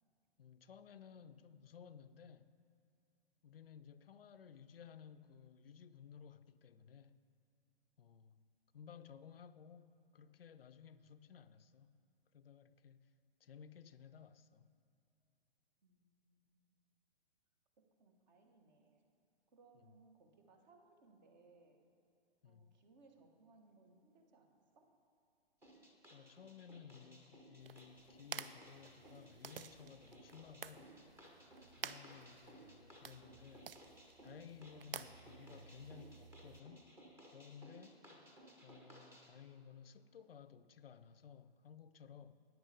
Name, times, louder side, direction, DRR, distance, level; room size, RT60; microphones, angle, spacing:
voice 1, 0.4-2.5 3.4-7.2 8.0-8.4 8.7-11.9 12.3-13.1 13.4-14.7 22.4-22.8 26.1-30.9 31.8-33.7 34.2-36.9 37.3-38.1 38.6-42.3, left 7 dB, 65° left, 0.5 m, -57 dB
voice 2, 15.8-16.8 17.8-19.0 19.5-21.8 22.4-24.9 42.0-42.2, right 3 dB, 45° right, 1.2 m, -67 dB
sound 1, 25.6-39.3, right 1 dB, 10° right, 0.7 m, -60 dB
sound 2, 27.6-36.6, right 7 dB, 65° right, 0.5 m, -52 dB
13.5 x 9.7 x 3.4 m
figure-of-eight pair, 115°, 31 cm